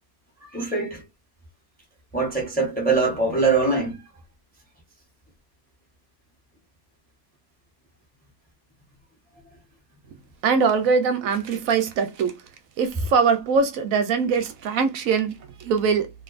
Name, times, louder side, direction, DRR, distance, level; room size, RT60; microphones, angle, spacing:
voice 1, 0.4-1.0 2.1-4.0, right 3 dB, 5° left, 0.8 m, -23 dB
voice 2, 10.4-12.4 12.8-16.1, right 5 dB, 70° right, 0.9 m, -22 dB
2.7 x 2.5 x 2.4 m
omnidirectional pair, 1.7 m